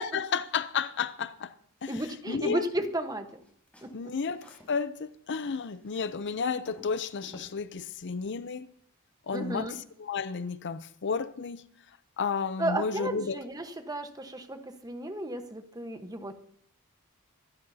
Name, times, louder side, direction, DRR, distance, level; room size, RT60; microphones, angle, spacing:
voice 1, 0.0-1.5 1.8-1.9 2.3-2.6 3.9-8.7 9.3-9.7 10.0-11.6 12.2-13.4, left 5 dB, 55° left, 0.6 m, -32 dB
voice 2, 1.9-3.4 3.8-4.1 9.3-9.8 12.6-16.3, right 1 dB, 15° right, 1.2 m, -34 dB
sound 1, 3.3-4.8 5.1-7.5, equal, 5° left, 4.5 m, -54 dB
25.0 x 12.5 x 2.8 m
head